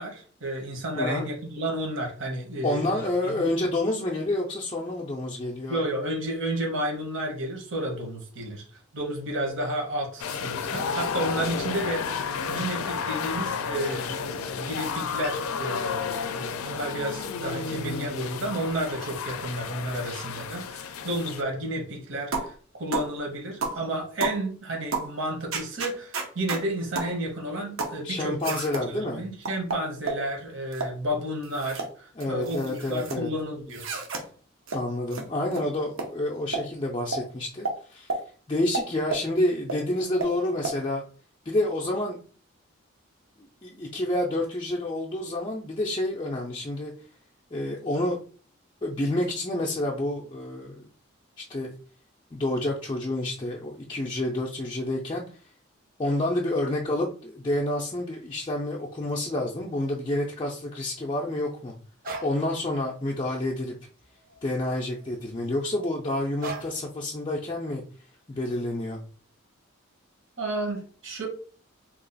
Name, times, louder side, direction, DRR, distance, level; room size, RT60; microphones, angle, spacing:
voice 1, 0.0-3.5 5.7-8.6 8.9-12.1 12.5-22.5 22.8-28.6 28.9-32.6 32.9-33.8 70.4-71.3, right 1 dB, 60° right, 0 dB, 1.2 m, -31 dB
voice 2, 0.9-1.3 2.6-5.8 28.0-29.3 32.2-33.3 34.7-38.1 38.5-41.0 41.5-42.2 43.6-46.9 47.5-48.2 48.8-50.9 51.4-51.7 52.3-55.4 56.0-61.7 62.2-63.7 64.4-67.8 68.3-69.0, left 1 dB, 20° left, -1 dB, 0.4 m, -29 dB
sound 1, 10.2-21.4, left 6 dB, 90° left, 0.4 m, -32 dB
sound 2, 22.3-22.5 22.9-23.1 23.6-23.8 24.2-24.4 24.9-25.1 25.5-26.6 27.0-27.1 27.8-28.0 28.4-28.9 29.5-30.2 30.7-31.0 31.4-31.9 32.2-33.2 33.7-34.2 34.7-34.8 35.1-35.2 35.5-35.6 36.0-36.1 36.5-36.7 37.1-37.2 37.7-37.8 38.1-38.2 38.7-39.3 39.7-39.8 40.2-40.3 40.6-40.8, right 3 dB, 80° right, 0.8 m, -31 dB
sound 3, 62.0-62.4 62.9-63.1 63.4-64.5 64.8-65.2 66.4-66.9, right 3 dB, 45° right, 0.6 m, -39 dB
2.9 x 2.4 x 3.9 m, 0.42 s
head